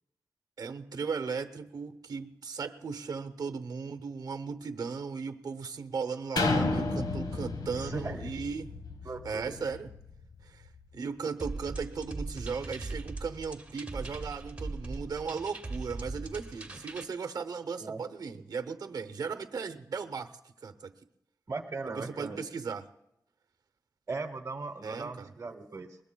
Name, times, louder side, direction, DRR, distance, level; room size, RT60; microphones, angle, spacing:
voice 1, 0.6-8.7 9.2-9.9 10.4-10.6 10.9-20.4 20.6-20.9 22.0-22.9 24.8-25.3, right 5 dB, 70° right, 9 dB, 0.8 m, -37 dB
sound 1, 6.4-10.1 10.7-10.8, left 3 dB, 80° left, 1.3 m, -32 dB
voice 2, 7.7-8.3 9.0-9.6 17.8-18.0 21.5-22.4 24.1-26.0, right 3 dB, 40° right, 3 dB, 1.0 m, -38 dB
sound 2, 11.4-17.0, right 2 dB, 20° right, 1.3 m, -40 dB
21.5 x 20.5 x 2.3 m, 0.85 s
wide cardioid pair, 125°, 7 cm